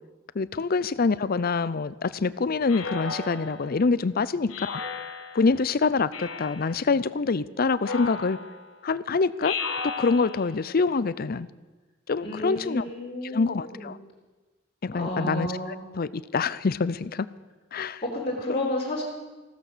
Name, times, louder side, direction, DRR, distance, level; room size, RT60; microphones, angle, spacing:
voice 1, 0.3-4.8 5.3-8.4 8.8-9.6 9.8-11.5 12.1-12.8 13.2-14.0 14.8-17.3 17.7-18.0 18.5-18.7, left 4 dB, 50° left, 17 dB, 0.5 m, -26 dB
Speech synthesizer, 2.7-3.8 4.5-5.5 6.1-6.8 7.8-8.7 9.4-10.6, left 4 dB, 90° left, 1.5 m, -35 dB
voice 2, 12.2-13.9 14.9-15.8 18.0-19.0, left 1 dB, 30° left, -4 dB, 3.9 m, -31 dB
15.5 x 13.5 x 6.7 m, 1.2 s
head